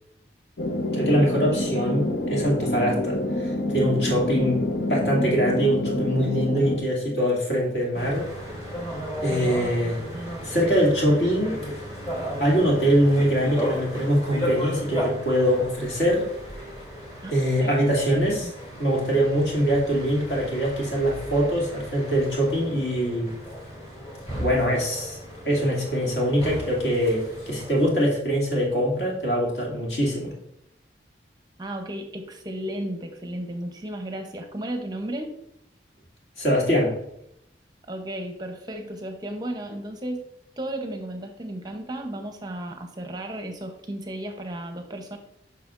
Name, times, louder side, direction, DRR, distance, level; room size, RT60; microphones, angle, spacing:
sound 1, 0.6-6.8, left 1 dB, 80° left, 1.0 m, -27 dB
voice 1, 0.9-3.2 3.4-4.6 4.9-8.3 9.2-10.0 10.2-11.6 12.4-16.3 17.3-18.5 18.8-23.3 24.4-25.2 25.4-30.3 36.4-36.9, equal, 60° left, -3 dB, 2.4 m, -23 dB
sound 2, 7.9-27.9, equal, 35° left, 2.8 m, -35 dB
voice 2, 18.1-18.5 31.6-35.4 37.9-40.2 40.6-45.2, right 1 dB, 25° right, 5 dB, 0.7 m, -34 dB
8.3 x 5.8 x 2.5 m, 0.76 s
head